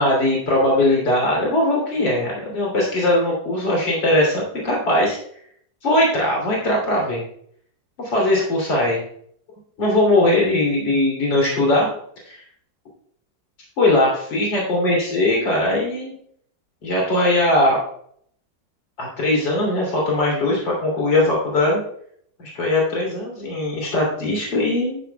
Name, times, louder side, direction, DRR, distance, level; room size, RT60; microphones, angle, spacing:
voice 1, 0.0-5.2 5.8-7.2 8.0-9.0 9.8-11.9 12.3-12.4 13.8-16.1 16.8-17.8 19.0-21.8 22.4-25.0, left 1 dB, 90° left, -3 dB, 3.8 m, -20 dB
10.5 x 10.5 x 2.3 m, 0.64 s
omnidirectional pair, 1.9 m